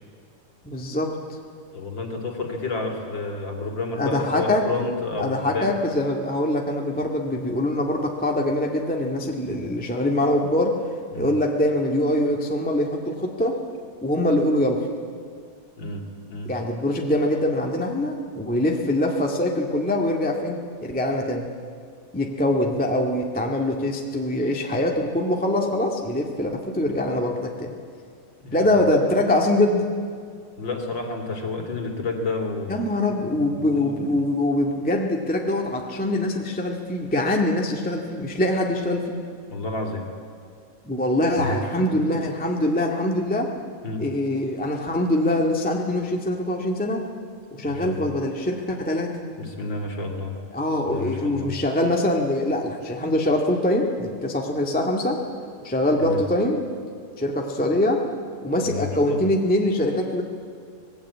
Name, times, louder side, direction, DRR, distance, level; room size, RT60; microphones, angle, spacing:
voice 1, 0.6-1.1 4.0-4.6 5.2-10.8 11.2-13.6 14.0-14.9 16.4-21.4 22.1-27.7 28.5-29.9 32.7-39.2 40.8-43.5 44.0-47.0 47.6-49.1 50.5-55.2 55.6-56.6 57.2-58.0 58.4-60.2, left 1 dB, 5° left, 0 dB, 1.0 m, -23 dB
voice 2, 1.7-5.7 11.1-11.3 15.8-16.5 28.4-28.8 30.6-32.8 33.1-34.2 39.5-40.1 41.4-41.9 43.8-44.1 47.6-48.1 49.4-50.4 50.9-51.5 56.0-56.2 58.6-59.2, left 3 dB, 35° left, 3 dB, 3.1 m, -30 dB
25.5 x 20.0 x 8.6 m, 2.2 s
omnidirectional pair, 3.8 m